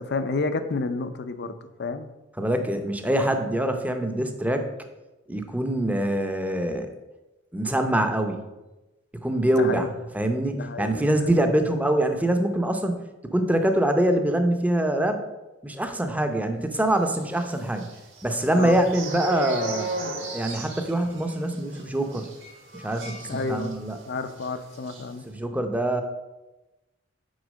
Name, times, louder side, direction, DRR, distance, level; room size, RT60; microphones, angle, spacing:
voice 1, 0.0-2.1 9.5-9.9 10.5-11.1 11.4-11.5 18.5-18.8 23.3-23.8 24.1-25.2, left 3 dB, 60° left, 10 dB, 0.6 m, -30 dB
voice 2, 2.4-4.7 5.3-6.9 7.5-8.4 9.2-9.9 10.1-13.0 13.3-15.2 15.6-17.9 18.2-19.9 20.3-22.3 22.7-24.0 25.3-26.0, right 1 dB, 10° right, 6 dB, 0.6 m, -24 dB
sound 1, 17.3-24.0 24.3-24.5 24.7-25.0, right 2 dB, 70° right, 2.4 m, -35 dB
6.3 x 4.5 x 6.2 m, 1.1 s
head